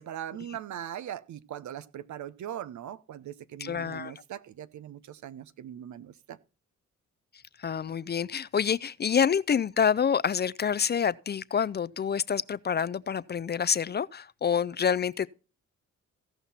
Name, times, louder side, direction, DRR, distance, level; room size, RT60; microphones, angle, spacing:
voice 1, 0.0-6.4, right 10 dB, 70° right, 0.8 m, -40 dB
voice 2, 3.6-4.1 7.6-15.3, left 7 dB, 35° left, 0.4 m, -27 dB
16.0 x 5.7 x 4.2 m
cardioid pair, 70°, 30 cm